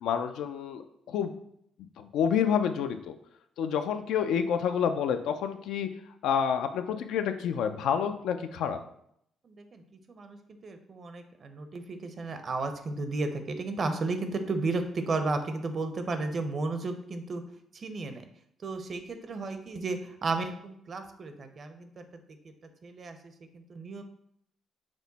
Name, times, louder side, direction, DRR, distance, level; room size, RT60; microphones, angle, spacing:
voice 1, 0.0-1.3 2.0-3.1 3.6-5.9 6.2-8.8, left 7 dB, 85° left, 8 dB, 0.4 m, -28 dB
voice 2, 9.4-9.8 10.1-10.4 10.6-17.4 17.7-18.3 18.6-22.0 22.8-23.2 23.5-24.0, right 3 dB, 45° right, 7 dB, 0.6 m, -33 dB
6.1 x 2.1 x 3.9 m, 0.72 s
cardioid pair, 90°, 0 cm